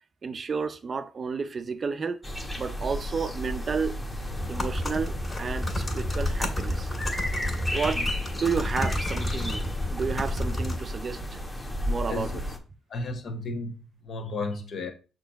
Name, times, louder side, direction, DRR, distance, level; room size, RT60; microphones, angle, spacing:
voice 1, 0.2-2.2 2.6-4.0 4.5-6.9 7.7-11.4 11.9-12.3, right 5 dB, 40° right, 0.6 m, -31 dB
sound 1, 2.2-12.6, equal, 10° left, 1.3 m, -33 dB
sound 2, 4.3-10.8, left 1 dB, 30° left, 2.1 m, -31 dB
voice 2, 12.1-12.4 12.9-14.9, left 3 dB, 55° left, 1.5 m, -33 dB
6.3 x 3.0 x 5.6 m
cardioid pair, 90°, 0 cm